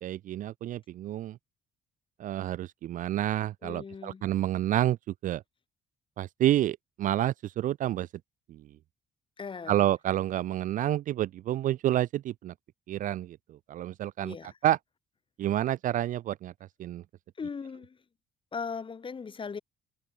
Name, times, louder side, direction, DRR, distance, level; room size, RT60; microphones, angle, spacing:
voice 1, 0.0-1.4 2.2-5.0 5.2-5.4 6.2-8.1 8.5-8.6 9.7-12.5 12.9-13.4 13.7-14.4 14.6-14.8 15.4-16.5 16.8-17.0, right 13 dB, 50° right, 0.4 m, -29 dB
voice 2, 3.6-4.3 9.4-9.9 14.2-14.6 17.4-18.0 18.5-19.6, left 5 dB, 30° left, 3.4 m, -38 dB
cardioid pair, 110°, 17 cm